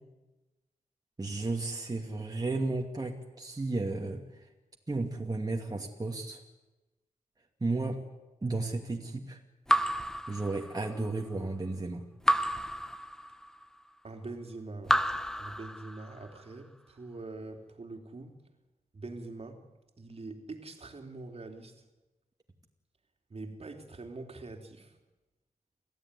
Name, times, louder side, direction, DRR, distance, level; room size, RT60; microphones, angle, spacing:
voice 1, 1.2-4.5 4.9-6.4 7.6-8.0 8.4-9.4 10.3-12.0, right 2 dB, 25° right, 1 dB, 2.5 m, -33 dB
Raindrop / Drip, 9.7-11.1 12.3-13.6 14.8-16.3, equal, 5° left, 1.0 m, -30 dB
voice 2, 14.0-15.0 15.4-18.4 18.9-19.6 20.0-21.8 23.3-25.0, right 3 dB, 45° right, 4 dB, 3.2 m, -44 dB
29.0 x 15.0 x 9.9 m, 1.1 s
cardioid pair, 70°, 14 cm